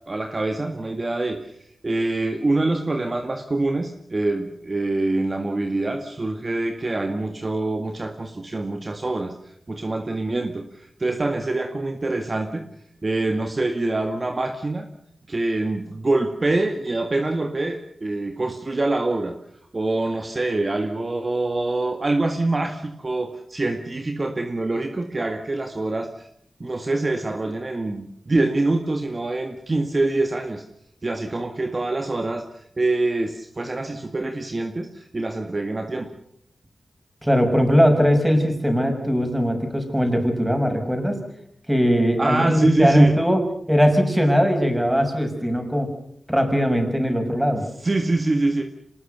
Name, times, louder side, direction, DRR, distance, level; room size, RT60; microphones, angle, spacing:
voice 1, 0.1-1.5 1.8-9.3 9.7-12.6 13.0-14.9 15.3-19.4 19.7-26.3 26.6-30.6 31.0-36.1 42.2-43.2 47.8-48.6, right 2 dB, 40° right, 5 dB, 1.9 m, -25 dB
voice 2, 37.2-41.2 41.7-43.4 43.7-45.9 46.3-47.6, equal, 10° right, 5 dB, 6.2 m, -20 dB
26.0 x 20.0 x 6.7 m, 0.70 s
cardioid pair, 60°, 0 cm